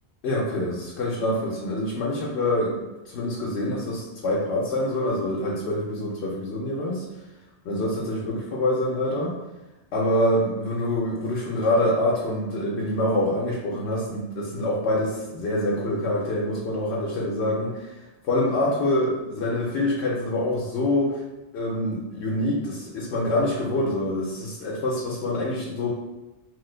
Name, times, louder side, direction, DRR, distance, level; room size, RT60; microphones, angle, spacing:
voice 1, 0.2-2.7 3.0-7.0 7.6-9.4 9.9-18.0 18.2-21.2 21.5-25.9, left 1 dB, 75° left, -4 dB, 0.9 m, -25 dB
3.0 x 2.2 x 3.2 m, 1.0 s
omnidirectional pair, 1.1 m